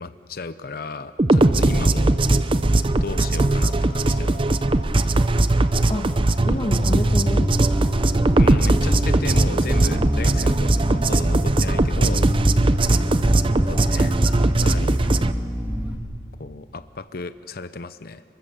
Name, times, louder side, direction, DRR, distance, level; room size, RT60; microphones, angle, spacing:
voice 1, 0.0-2.1 3.0-4.5 8.4-12.3 13.6-14.2 14.5-15.0 16.4-18.2, left 3 dB, 55° left, 12 dB, 0.7 m, -34 dB
sound 1, 1.2-15.3, right 2 dB, 30° right, 0.6 m, -19 dB
voice 2, 1.6-2.1 5.9-6.1 6.4-7.6 12.9-13.2, left 1 dB, 30° left, 1 dB, 1.3 m, -29 dB
Bass guitar, 6.4-16.0, equal, 10° right, 1.6 m, -27 dB
27.0 x 23.5 x 6.8 m, 2.5 s
head